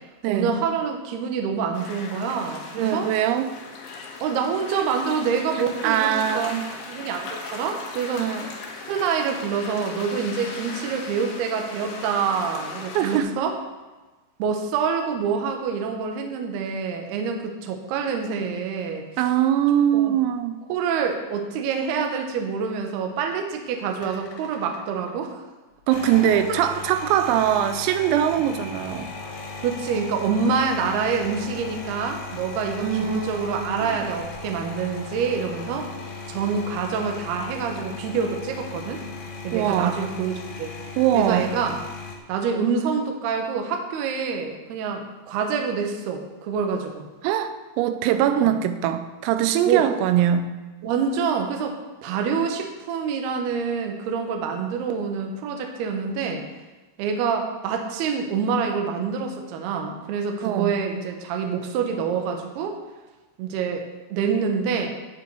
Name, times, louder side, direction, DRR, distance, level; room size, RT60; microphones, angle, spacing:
voice 1, 0.3-3.1 4.2-6.6 6.9-8.3 8.8-13.6 14.4-19.1 19.9-20.2 20.7-25.4 26.5-26.6 28.4-28.5 29.6-35.9 36.3-39.0 39.4-40.7 41.1-41.8 42.3-47.1 48.4-48.5 49.7-49.8 50.8-56.4 57.0-62.8 63.4-64.9, right 6 dB, 70° right, 3 dB, 2.5 m, -26 dB
sound 1, 1.7-13.2, left 4 dB, 65° left, 2.9 m, -38 dB
voice 2, 2.8-3.5 5.8-6.7 8.2-8.5 12.9-13.3 19.2-20.6 25.9-29.1 32.8-34.0 39.5-40.0 41.0-41.5 47.2-50.5 60.4-60.7, right 10 dB, 85° right, 9 dB, 3.4 m, -22 dB
sound 2, 24.0-25.1 25.8-42.2, left 4 dB, 85° left, 4.2 m, -37 dB
11.0 x 9.2 x 4.7 m, 1.2 s
omnidirectional pair, 6.0 m